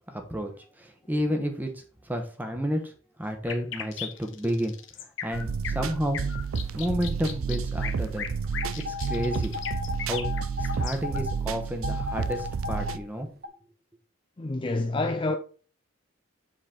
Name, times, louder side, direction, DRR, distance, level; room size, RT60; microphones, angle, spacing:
voice 1, 0.1-2.9 3.2-4.8 5.2-6.2 6.7-8.2 8.8-9.5 10.0-10.3 10.6-13.3, equal, 10° right, 1.1 m, -31 dB
sound 1, 3.4-11.2, left 8 dB, 60° left, 1.1 m, -37 dB
sound 2, 5.3-13.0, right 6 dB, 80° right, 0.5 m, -31 dB
sound 3, 8.6-11.3 11.8-12.9 13.4-13.5, left 5 dB, 50° right, 1.2 m, -35 dB
voice 2, 14.4-15.4, left 2 dB, 25° left, 0.4 m, -27 dB
7.6 x 4.2 x 4.4 m
head